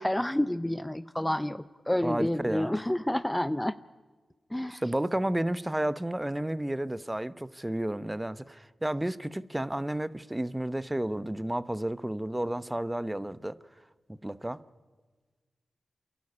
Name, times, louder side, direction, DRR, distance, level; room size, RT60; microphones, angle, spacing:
voice 1, 0.0-3.7 4.5-4.8, left 1 dB, 10° left, 0.6 m, -29 dB
voice 2, 2.0-2.7 4.7-13.6 14.2-14.6, right 1 dB, 15° right, 0.9 m, -31 dB
28.0 x 11.5 x 9.8 m
cardioid pair, 40°, 0 cm